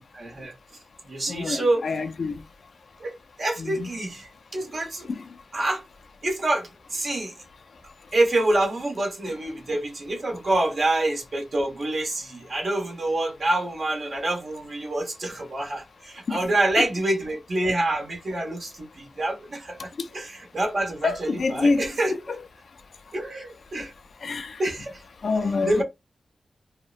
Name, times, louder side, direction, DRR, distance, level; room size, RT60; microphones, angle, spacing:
voice 1, 0.1-0.5 1.0-1.8 3.0-5.1 5.5-5.8 6.2-7.3 8.1-22.4 23.1-23.9 24.6-25.0 25.6-25.8, right 1 dB, 55° right, 1.1 m, -27 dB
voice 2, 1.3-2.3 3.6-3.9 16.3-16.4 21.0-21.8 24.2-24.5 25.2-25.8, left 4 dB, 65° left, 0.3 m, -26 dB
2.7 x 2.1 x 2.4 m
wide cardioid pair, 100°, 0 cm